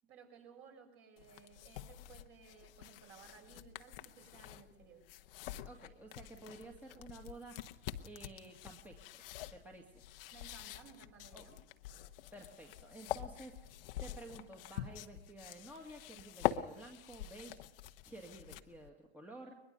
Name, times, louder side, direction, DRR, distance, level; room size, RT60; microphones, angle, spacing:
voice 1, 0.0-5.1 10.3-11.6, right 6 dB, 40° right, 3 dB, 6.6 m, -58 dB
sound 1, 1.2-18.9, left 13 dB, 55° left, 1.2 m, -45 dB
voice 2, 5.6-7.6 8.0-9.2 9.5-10.1 11.3-11.5 12.3-17.6 18.0-19.6, right 2 dB, 5° right, 1 dB, 2.2 m, -52 dB
22.5 x 22.0 x 5.4 m, 0.87 s
hypercardioid pair, 105°, 33 cm